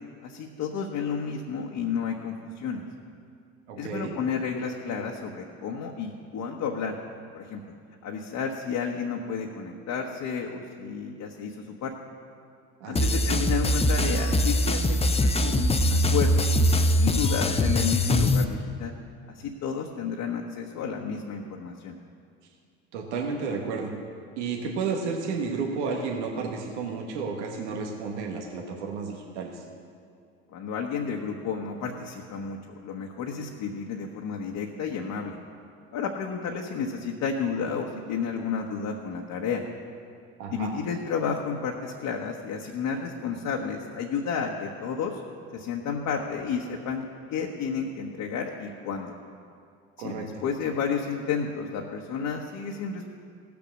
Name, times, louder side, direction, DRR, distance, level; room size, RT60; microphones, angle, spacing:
voice 1, 0.2-2.8 3.8-7.0 7.3-7.7 8.0-11.9 12.9-16.5 16.9-18.9 19.3-22.0 30.5-35.4 35.9-39.6 40.5-45.2 45.5-49.1 50.0-53.1, left 6 dB, 60° left, 0 dB, 1.2 m, -31 dB
voice 2, 3.7-4.1 12.8-13.2 22.9-23.9 24.4-29.6 40.4-40.7 50.0-50.3, right 5 dB, 90° right, 1 dB, 1.4 m, -32 dB
sound 1, 13.0-18.4, left 1 dB, 20° left, 0.8 m, -22 dB
16.0 x 7.0 x 6.5 m, 2.3 s
supercardioid pair, 80°, 34 cm